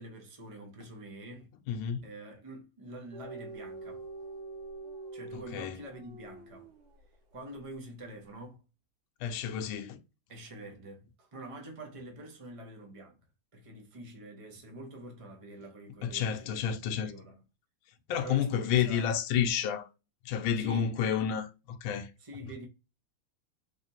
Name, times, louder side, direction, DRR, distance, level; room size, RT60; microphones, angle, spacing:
voice 1, 0.0-1.5 2.0-4.1 5.1-6.7 7.3-8.6 10.3-13.2 13.5-16.6 16.9-17.4 18.2-19.2 20.6-20.9 22.2-22.7, right 1 dB, 40° right, 0.4 m, -46 dB
voice 2, 1.7-2.0 5.5-5.7 9.2-10.0 16.0-17.1 18.1-19.9 20.3-22.1, left 8 dB, 80° left, 1.4 m, -30 dB
sound 1, 3.1-7.1, right 2 dB, 85° right, 1.7 m, -45 dB
3.6 x 3.3 x 2.7 m
omnidirectional pair, 2.2 m